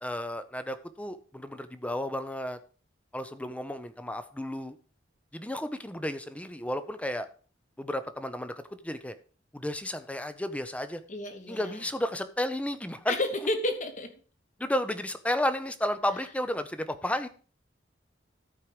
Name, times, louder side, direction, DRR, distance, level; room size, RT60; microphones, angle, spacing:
voice 1, 0.0-2.6 3.1-4.8 5.3-7.3 7.8-9.1 9.5-11.0 11.5-13.2 14.6-17.3, left 1 dB, 5° left, 11 dB, 0.7 m, -32 dB
voice 2, 11.1-11.8 13.1-14.1, left 2 dB, 40° left, 6 dB, 1.5 m, -31 dB
13.5 x 4.6 x 4.9 m, 0.38 s
head